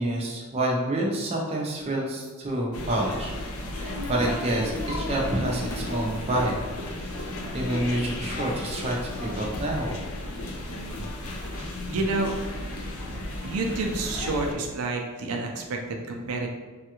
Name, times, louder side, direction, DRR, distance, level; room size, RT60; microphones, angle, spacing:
voice 1, 0.0-3.3 3.7-6.6 7.5-9.9, right 1 dB, 30° right, -2 dB, 0.5 m, -28 dB
sound 1, 2.7-14.5, left 1 dB, 75° left, 0.5 m, -34 dB
voice 2, 11.5-12.3 13.4-16.5, right 3 dB, 85° right, 1 dB, 0.4 m, -29 dB
3.3 x 2.3 x 2.9 m, 1.3 s
head